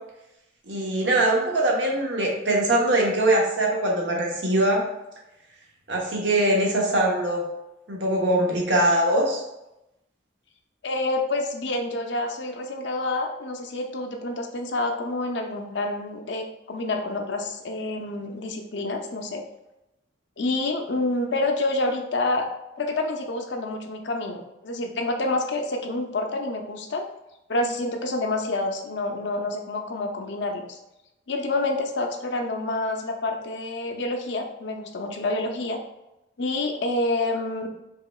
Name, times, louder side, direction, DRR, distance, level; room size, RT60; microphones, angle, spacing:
voice 1, 0.7-4.9 5.9-7.4 7.9-9.4, right 1 dB, 65° right, -1 dB, 1.0 m, -22 dB
voice 2, 10.8-19.4 20.4-22.5 22.8-27.1 27.5-30.8 31.3-35.8 36.4-37.7, left 2 dB, 65° left, 4 dB, 0.6 m, -28 dB
4.8 x 3.3 x 2.3 m, 0.91 s
head